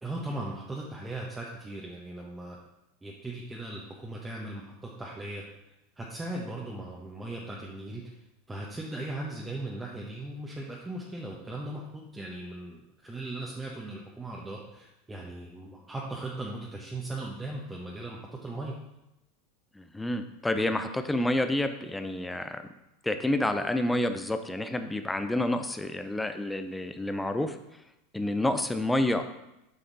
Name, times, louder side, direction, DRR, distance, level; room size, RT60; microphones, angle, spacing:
voice 1, 0.0-2.6 3.0-5.4 6.0-8.0 8.5-18.7, right 2 dB, 10° right, -4 dB, 1.3 m, -38 dB
voice 2, 19.7-22.6 23.0-27.6 28.1-29.2, left 1 dB, 10° left, 9 dB, 0.7 m, -29 dB
8.2 x 5.7 x 4.1 m, 0.89 s
figure-of-eight pair, 85°, 0 cm